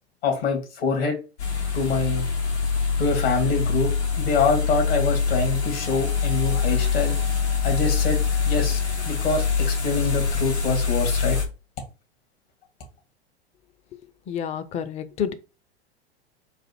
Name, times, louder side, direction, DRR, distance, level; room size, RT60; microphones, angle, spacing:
voice 1, 0.2-1.2 1.7-2.2 3.0-3.9 4.2-7.2 7.6-11.4, left 4 dB, 60° left, 2.0 m, -25 dB
sound 1, 1.4-11.4, left 5 dB, 80° left, 1.5 m, -24 dB
voice 2, 14.3-15.3, left 8 dB, 20° left, 0.4 m, -29 dB
4.0 x 2.5 x 4.2 m
figure-of-eight pair, 95°, 33 cm